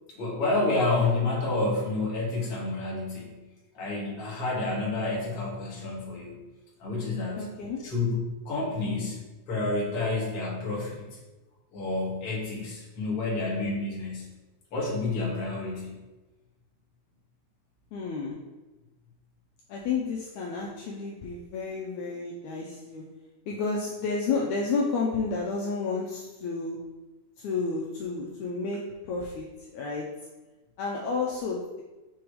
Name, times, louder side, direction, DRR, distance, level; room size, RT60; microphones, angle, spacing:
voice 1, 0.1-3.4 3.7-6.4 6.8-7.5 7.8-11.1 11.7-14.3 14.7-16.0, left 2 dB, 50° left, -4 dB, 2.1 m, -29 dB
voice 2, 7.4-7.8 17.9-18.5 19.7-23.2 23.5-26.9 27.4-30.2 30.8-31.8, left 4 dB, 85° left, -2 dB, 1.7 m, -31 dB
6.3 x 3.4 x 4.7 m, 1.1 s
omnidirectional pair, 4.0 m